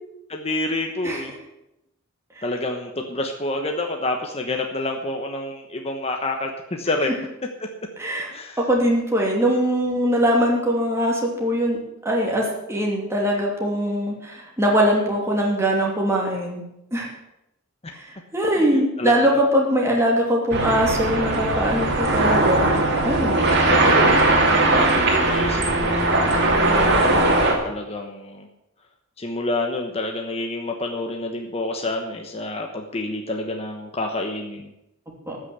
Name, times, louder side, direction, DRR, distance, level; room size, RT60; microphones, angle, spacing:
voice 1, 0.3-1.3 2.4-7.1 8.3-8.7 18.7-19.4 23.7-28.5 29.2-34.7, left 2 dB, 30° left, 2 dB, 1.1 m, -28 dB
voice 2, 8.6-11.8 12.0-17.1 17.9-18.0 18.3-23.5 35.3-35.4, equal, 15° right, -2 dB, 2.9 m, -22 dB
sound 1, 20.5-27.5, right 2 dB, 55° right, 2.6 m, -19 dB
13.5 x 6.5 x 8.2 m, 0.86 s
head